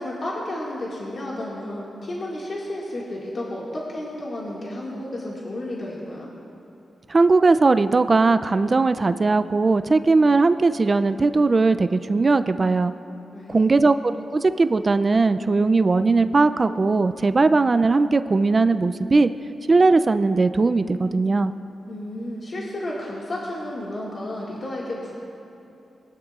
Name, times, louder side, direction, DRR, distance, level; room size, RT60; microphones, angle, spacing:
voice 1, 0.0-6.3 13.3-13.8 21.9-25.1, left 1 dB, 50° left, -5 dB, 1.8 m, -32 dB
voice 2, 7.1-12.9 13.5-19.3 19.7-21.5, right 3 dB, 35° right, 12 dB, 0.3 m, -19 dB
21.0 x 12.0 x 2.4 m, 2.8 s
cardioid pair, 90°, 0 cm